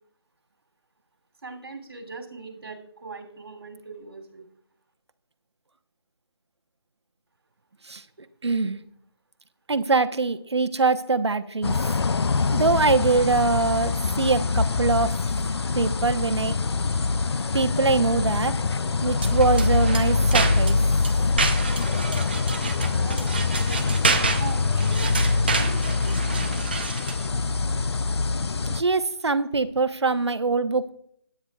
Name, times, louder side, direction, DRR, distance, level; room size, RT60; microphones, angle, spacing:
voice 1, 1.4-4.4 22.9-24.0 24.4-25.8, right 4 dB, 60° right, 3 dB, 2.9 m, -40 dB
voice 2, 8.4-8.8 9.7-11.9 12.5-15.1 15.7-16.5 17.5-18.5 19.0-20.8 28.7-30.9, right 3 dB, 85° right, 10 dB, 1.0 m, -23 dB
sound 1, 11.6-28.8, left 4 dB, 75° left, 0.5 m, -24 dB
sound 2, 19.1-27.3, right 4 dB, 25° right, 0.6 m, -29 dB
18.0 x 9.5 x 2.4 m, 0.66 s
figure-of-eight pair, 170°, 14 cm